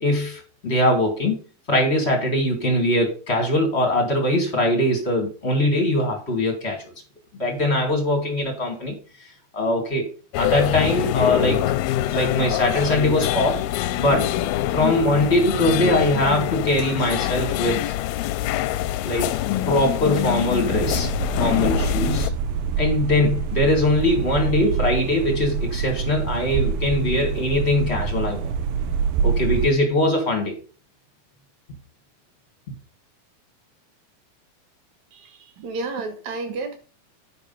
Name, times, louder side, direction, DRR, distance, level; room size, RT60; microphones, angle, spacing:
voice 1, 0.0-1.4 1.7-6.8 7.4-8.9 9.5-10.1 10.4-11.6 12.1-13.6 14.0-14.4 14.7-17.9 19.0-19.3 19.7-21.1 21.4-22.3 22.8-28.5 29.2-30.6, left 1 dB, 45° left, 2 dB, 0.8 m, -21 dB
sound 1, 10.3-22.3, left 13 dB, 90° left, 2.5 m, -25 dB
sound 2, 20.6-29.7, right 6 dB, 75° right, 2.3 m, -26 dB
voice 2, 35.1-36.8, right 3 dB, 55° right, 6 dB, 2.4 m, -31 dB
9.5 x 5.2 x 5.4 m, 0.36 s
omnidirectional pair, 4.3 m